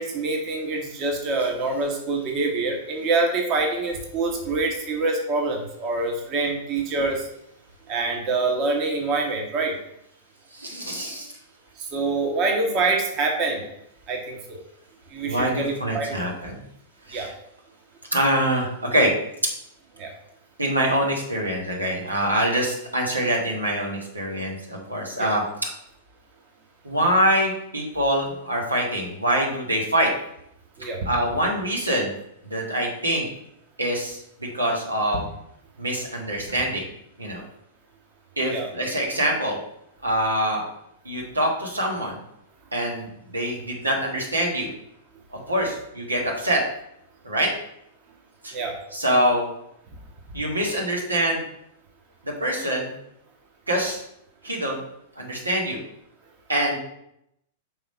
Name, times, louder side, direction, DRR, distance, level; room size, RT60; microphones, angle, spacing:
voice 1, 0.0-7.3 7.9-9.8 11.8-13.6 14.1-14.6 15.1-16.2 17.1-17.3 20.0-20.1 25.2-25.3 30.8-31.1 38.5-38.7 48.5-48.7, right 3 dB, 35° right, 1 dB, 1.3 m, -25 dB
voice 2, 10.5-11.3 15.3-16.6 17.1-17.3 18.1-19.1 20.6-25.4 26.8-30.1 31.0-32.1 32.4-33.3 33.8-34.2 34.5-35.2 35.8-36.8 37.2-37.4 38.4-39.6 40.0-40.6 41.0-42.2 42.7-44.7 45.5-46.6 47.2-47.5 48.4-48.5 48.9-49.5 50.3-51.4 52.4-52.9 53.7-54.0 54.4-54.8 55.2-55.8 56.5-56.8, right 1 dB, 85° right, -1 dB, 1.6 m, -24 dB
5.6 x 3.9 x 5.5 m, 0.78 s
figure-of-eight pair, 100°, 0 cm